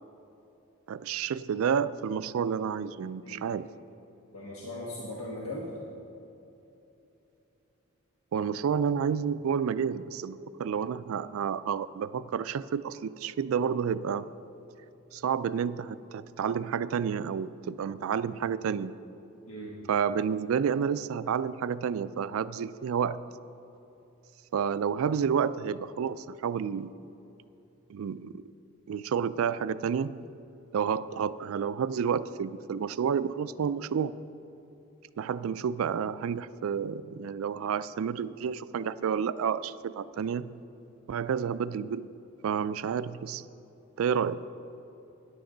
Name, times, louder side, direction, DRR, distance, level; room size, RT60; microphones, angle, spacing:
voice 1, 0.9-3.7 8.3-14.3 15.1-18.9 19.9-23.2 24.5-26.9 27.9-28.4 28.9-30.1 30.7-34.1 35.2-40.5 41.1-42.1 42.4-43.4 44.0-44.4, right 7 dB, 70° right, 16 dB, 0.3 m, -30 dB
voice 2, 4.3-5.9 19.5-19.8, left 1 dB, 70° left, -5 dB, 1.5 m, -39 dB
14.0 x 10.0 x 3.9 m, 2.9 s
head